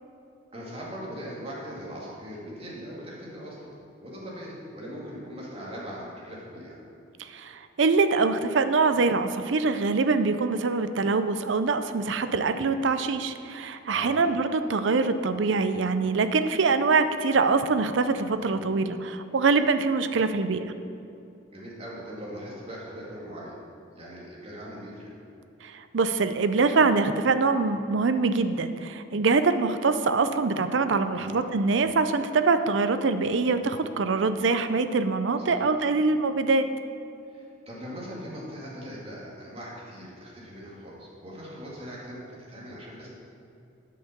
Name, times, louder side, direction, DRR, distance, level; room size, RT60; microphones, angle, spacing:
voice 1, 0.5-3.7 4.0-6.8 13.9-14.2 18.4-18.6 21.5-23.5 23.9-25.1 31.2-31.4 35.4-35.6 37.3-43.1, equal, 30° right, -5 dB, 2.1 m, -40 dB
voice 2, 7.2-20.6 25.6-36.7, right 4 dB, 70° right, 10 dB, 0.5 m, -24 dB
8.5 x 5.7 x 6.7 m, 2.6 s
head